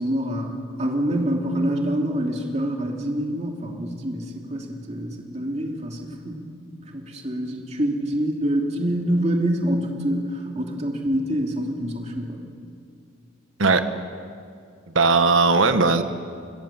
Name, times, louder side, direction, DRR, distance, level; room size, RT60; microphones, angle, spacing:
voice 1, 0.0-6.3 6.8-12.4, equal, 35° right, 1 dB, 2.8 m, -26 dB
voice 2, 14.9-16.0, right 3 dB, 75° right, 9 dB, 1.4 m, -18 dB
26.5 x 21.5 x 7.4 m, 2.3 s
head